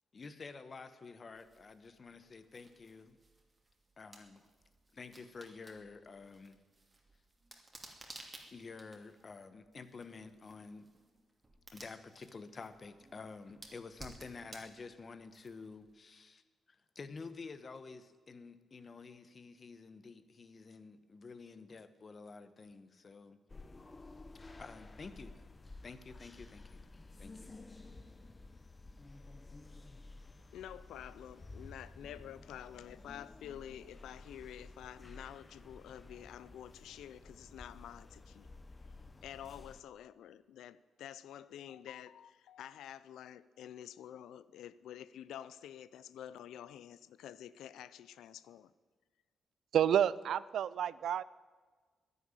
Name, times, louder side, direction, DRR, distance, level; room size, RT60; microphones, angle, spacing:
voice 1, 0.1-3.2 4.0-4.4 4.9-6.6 8.5-10.9 11.7-16.4 16.7-23.4 24.3-25.4 25.8-26.9 27.2-27.5, left 4 dB, 45° left, 12 dB, 1.1 m, -50 dB
sound 1, 1.3-15.9, right 2 dB, 25° right, 2.7 m, -57 dB
sound 2, 23.5-39.8, left 2 dB, 30° left, 0.8 m, -53 dB
voice 2, 30.5-38.5 39.2-48.7, left 10 dB, 85° left, 17 dB, 0.4 m, -49 dB
voice 3, 49.7-51.2, right 9 dB, 75° right, 19 dB, 0.4 m, -30 dB
11.0 x 9.9 x 9.8 m, 1.4 s
cardioid pair, 70°, 0 cm